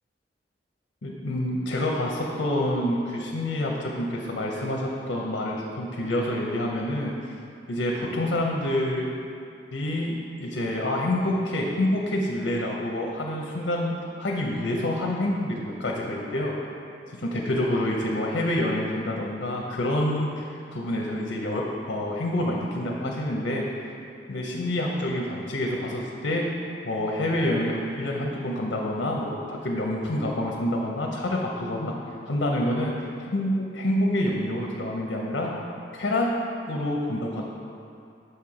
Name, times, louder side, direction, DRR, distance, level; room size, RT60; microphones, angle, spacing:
voice 1, 1.0-7.3 7.7-9.1 9.7-10.1 10.4-16.5 17.1-23.7 24.3-26.5 26.8-32.0 32.3-35.5 35.9-36.3 36.7-37.5, left 1 dB, 65° left, -1 dB, 0.6 m, -27 dB
6.6 x 4.3 x 4.9 m, 2.6 s
head